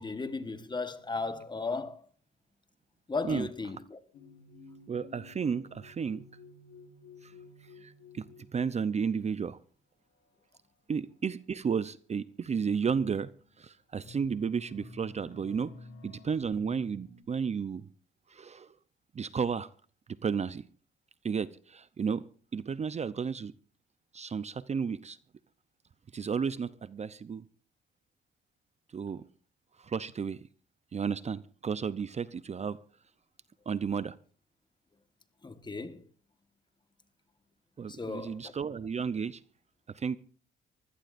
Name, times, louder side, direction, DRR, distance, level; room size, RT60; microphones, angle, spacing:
voice 1, 0.0-2.0 3.1-4.0 35.4-36.1 37.9-38.5, left 3 dB, 20° left, 1.4 m, -36 dB
sound 1, 4.1-9.3 10.1-10.4 11.6-11.7 12.4-12.5 13.2-13.6 13.9-17.2, left 3 dB, 85° left, 5.6 m, -52 dB
voice 2, 4.9-6.2 7.2-7.3 7.8-8.3 8.5-9.6 10.9-13.3 13.6-15.7 16.0-17.8 18.3-18.7 19.1-19.7 20.2-20.6 21.2-22.2 22.5-23.5 24.1-25.2 26.1-27.4 28.9-29.2 29.8-30.4 30.9-32.8 33.7-34.2 37.8-39.4 39.9-40.2, right 6 dB, 35° right, 0.6 m, -32 dB
24.0 x 16.5 x 2.6 m
cardioid pair, 90°, 20 cm